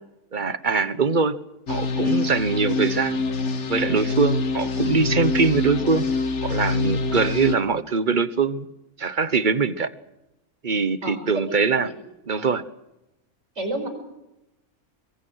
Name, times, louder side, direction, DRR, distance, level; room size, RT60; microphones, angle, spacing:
voice 1, 0.3-1.4 1.7-3.2 3.7-6.1 6.4-8.7 9.0-9.9 10.6-11.9 12.3-12.6, right 4 dB, 40° right, 15 dB, 1.1 m, -22 dB
sound 1, 1.7-7.6, left 3 dB, 55° left, 1.6 m, -25 dB
voice 2, 11.0-11.9 13.6-13.9, right 1 dB, 55° right, 6 dB, 5.5 m, -31 dB
25.0 x 22.5 x 6.3 m, 0.93 s
omnidirectional pair, 1.5 m